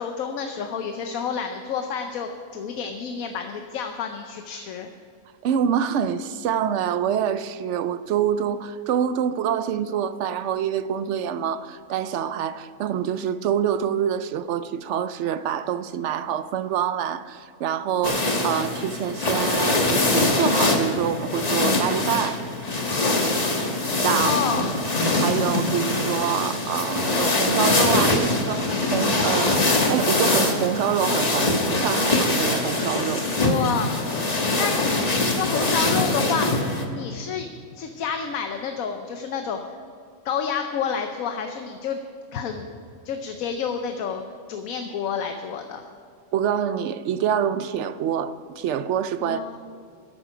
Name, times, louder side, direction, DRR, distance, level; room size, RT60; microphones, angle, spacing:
voice 1, 0.0-4.9 24.2-24.6 33.4-33.9 34.6-35.0 35.3-37.5 37.7-39.6 40.2-42.0 42.3-42.8 43.0-44.2 44.5-45.9 49.2-49.6, left 6 dB, 85° left, 1.2 m, -29 dB
voice 2, 5.4-22.4 24.0-24.4 25.2-33.2 46.3-49.4, right 9 dB, 65° right, 0.8 m, -26 dB
sound 1, 18.0-36.8, left 2 dB, 30° left, 1.2 m, -23 dB
13.0 x 11.0 x 5.0 m
omnidirectional pair, 1.4 m